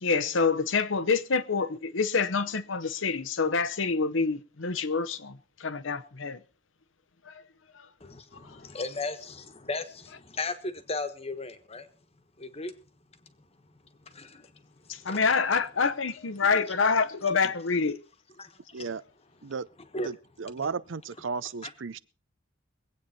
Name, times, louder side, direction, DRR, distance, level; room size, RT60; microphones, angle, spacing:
voice 1, 0.0-6.4 7.3-7.4 7.7-7.9 8.4-8.5 14.9-18.0, left 4 dB, 80° left, 0.9 m, -27 dB
voice 2, 8.0-11.9 12.4-12.7 14.1-14.5 15.0-15.2 18.4-18.8 19.9-20.1, left 3 dB, 30° left, 1.3 m, -36 dB
voice 3, 20.0-22.0, right 5 dB, 75° right, 0.6 m, -34 dB
22.5 x 8.5 x 4.3 m
head